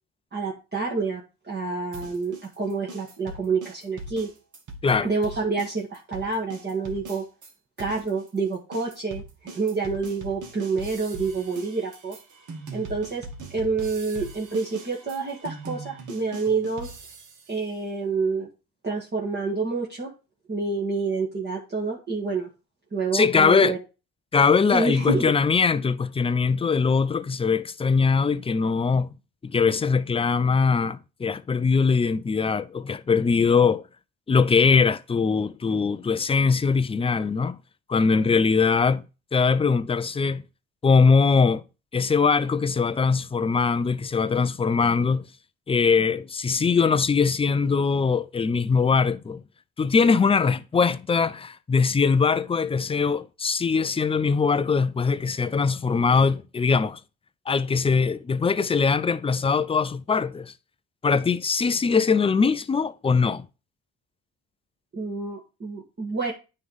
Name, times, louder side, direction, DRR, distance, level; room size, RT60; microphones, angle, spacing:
voice 1, 0.3-4.3 5.0-7.2 7.8-12.2 12.7-16.9 17.5-18.5 18.8-20.1 20.5-22.5 22.9-23.8 24.7-25.3 64.9-66.3, right 4 dB, 30° right, 1.8 m, -28 dB
sound 1, 1.9-7.5 7.8-17.5, right 2 dB, 55° right, 2.0 m, -41 dB
voice 2, 23.1-23.8 24.3-29.1 29.4-33.8 34.3-37.6 37.9-39.0 39.3-40.4 40.8-41.6 41.9-45.2 45.7-49.4 49.8-57.0 57.5-60.5 61.0-63.4, left 5 dB, 15° left, 0.5 m, -21 dB
9.4 x 3.3 x 5.5 m
cardioid pair, 95°, 35 cm